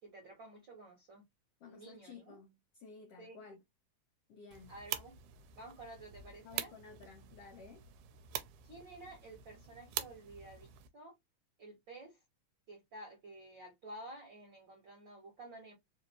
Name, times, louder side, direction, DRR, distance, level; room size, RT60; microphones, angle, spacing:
voice 1, 0.0-1.2 1.7-2.4 3.2-3.4 4.7-5.1 5.5-6.7 8.6-11.1 11.6-12.2 12.7-15.8, right 2 dB, 50° right, 1.5 m, -52 dB
voice 2, 1.6-3.6 4.3-4.7 6.4-7.8, left 5 dB, 80° left, 1.3 m, -54 dB
sound 1, 4.5-10.9, right 11 dB, 80° right, 2.1 m, -45 dB
4.9 x 2.6 x 2.9 m
omnidirectional pair, 3.8 m